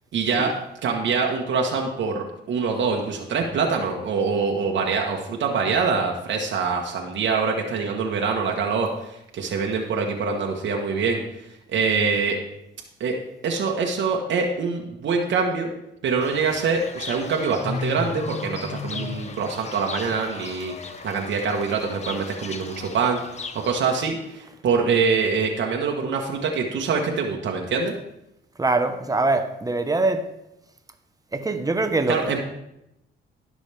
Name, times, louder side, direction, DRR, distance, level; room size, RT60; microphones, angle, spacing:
voice 1, 0.1-12.4 13.0-13.2 13.4-15.7 16.0-27.9 32.1-32.4, right 5 dB, 70° right, 0 dB, 1.3 m, -25 dB
Fowl / Bird, 16.2-24.1, left 4 dB, 35° left, 0.9 m, -35 dB
voice 2, 28.6-30.2 31.3-32.2, right 3 dB, 20° right, 7 dB, 1.1 m, -23 dB
16.5 x 6.1 x 3.4 m, 0.85 s
cardioid pair, 90°, 20 cm